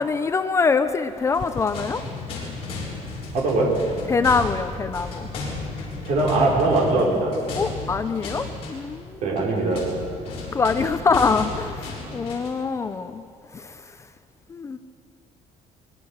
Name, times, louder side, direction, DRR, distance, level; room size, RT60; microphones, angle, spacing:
voice 1, 0.0-2.0 4.1-5.3 7.6-9.4 10.5-13.2 13.5-14.1 14.5-14.8, left 4 dB, 20° left, 10 dB, 0.6 m, -24 dB
sound 1, 1.2-12.6, left 3 dB, 45° left, 7.0 m, -34 dB
voice 2, 3.3-3.7 6.1-7.3 9.2-9.8, right 2 dB, 55° right, -1 dB, 5.2 m, -21 dB
24.5 x 22.5 x 6.5 m, 2.6 s
cardioid pair, 180°, 14 cm